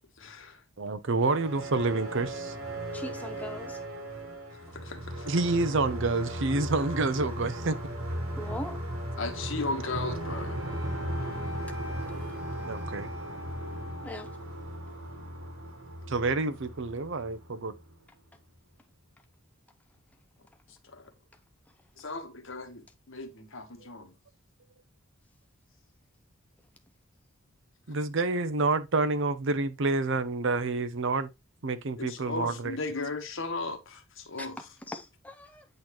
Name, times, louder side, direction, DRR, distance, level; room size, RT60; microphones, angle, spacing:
voice 1, 0.2-0.6 4.5-5.4 9.2-10.6 20.8-21.1 22.0-24.1 32.0-34.7, left 3 dB, 60° left, 1.3 m, -36 dB
voice 2, 0.8-2.5 5.3-7.8 12.6-13.1 16.1-17.7 23.8-23.9 27.9-31.3 31.6-32.7, right 3 dB, 60° right, 0.7 m, -28 dB
sound 1, 1.1-17.9, right 1 dB, 75° right, 1.5 m, -37 dB
voice 3, 2.9-3.8 8.4-8.8 14.0-14.3 34.4-34.5 34.9-35.6, left 1 dB, 5° left, 0.6 m, -40 dB
Wind instrument woodwind instrument, 10.2-14.4, left 2 dB, 85° left, 1.2 m, -45 dB
8.8 x 3.9 x 3.0 m
head